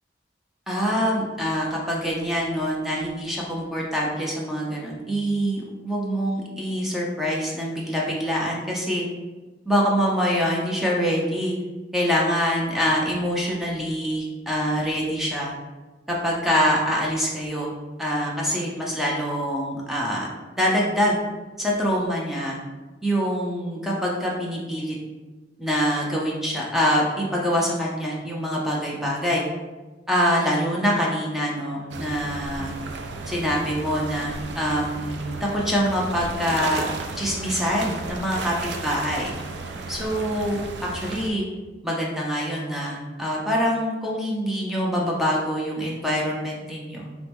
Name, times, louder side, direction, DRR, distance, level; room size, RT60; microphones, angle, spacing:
voice 1, 0.7-9.1 9.7-11.6 11.9-15.5 16.1-17.7 18.0-20.3 20.6-21.2 21.6-22.6 23.0-25.0 25.6-29.5 30.1-32.7 33.3-36.9 37.2-39.3 39.9-41.4 41.8-47.1, equal, ahead, -4 dB, 0.6 m, -25 dB
sound 1, 31.9-41.3, right 3 dB, 80° right, 0.5 m, -34 dB
4.4 x 3.1 x 3.5 m, 1.2 s
head